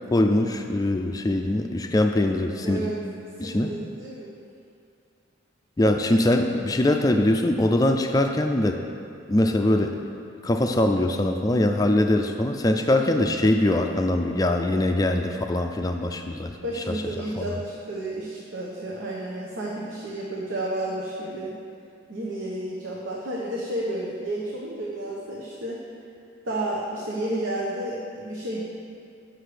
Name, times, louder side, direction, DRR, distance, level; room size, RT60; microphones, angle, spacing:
voice 1, 0.1-2.9 3.4-3.7 5.8-8.8 9.3-9.9 10.4-16.5 16.9-17.0, left 1 dB, 20° left, 5 dB, 0.3 m, -22 dB
voice 2, 2.6-3.0 3.4-4.3 11.9-12.0 12.9-13.1 16.6-21.6 22.1-25.8 26.4-28.6, right 1 dB, 85° right, -5 dB, 1.1 m, -31 dB
7.9 x 6.5 x 5.0 m, 2.4 s
head